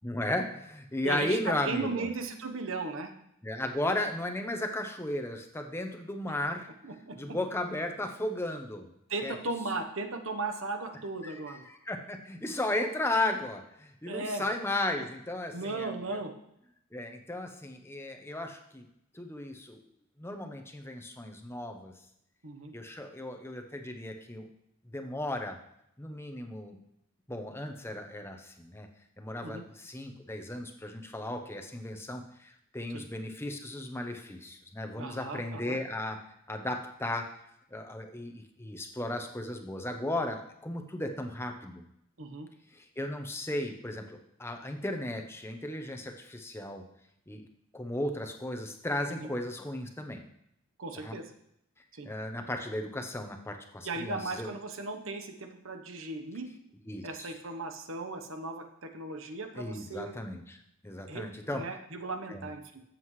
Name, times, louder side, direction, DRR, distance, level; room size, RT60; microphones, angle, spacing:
voice 1, 0.0-2.1 3.4-6.7 7.2-8.9 9.2-9.3 11.2-16.2 16.9-18.9 19.1-19.8 20.2-21.9 22.7-24.5 24.9-25.6 26.0-26.8 27.3-28.9 29.2-36.2 36.5-37.3 37.7-41.8 42.7-46.8 47.3-47.4 47.7-50.2 51.0-51.1 52.0-54.5 56.9-57.3 59.6-60.6 60.8-61.6 62.3-62.5, left 1 dB, 10° left, 4 dB, 0.8 m, -35 dB
voice 2, 1.0-3.1 6.8-7.2 9.1-11.6 14.1-14.5 15.0-15.1 15.5-16.3 22.4-22.7 29.4-29.6 32.9-33.1 35.0-35.8 42.2-42.5 49.1-49.3 50.8-51.3 51.9-52.1 53.8-56.5 57.0-60.1 61.1-62.8, right 3 dB, 65° right, 6 dB, 1.1 m, -37 dB
13.0 x 7.6 x 3.2 m, 0.77 s
head